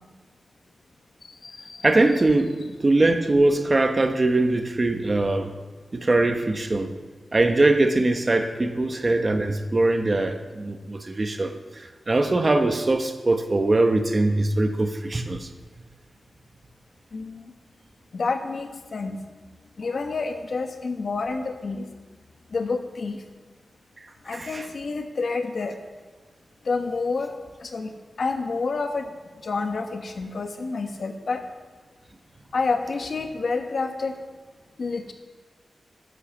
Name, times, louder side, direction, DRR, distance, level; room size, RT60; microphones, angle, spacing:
voice 1, 1.2-1.8 17.1-17.4 18.1-19.2 19.8-21.9 22.5-23.2 24.2-25.8 26.6-27.3 27.6-29.1 29.4-31.4 32.5-34.1 34.8-35.1, left 4 dB, 55° left, 5 dB, 1.3 m, -29 dB
voice 2, 1.8-2.5 2.8-5.5 5.9-6.9 7.3-11.5 12.1-15.5 24.3-24.6, right 2 dB, 30° right, 7 dB, 0.9 m, -21 dB
11.5 x 10.0 x 7.2 m, 1.3 s
wide cardioid pair, 170°, 0 cm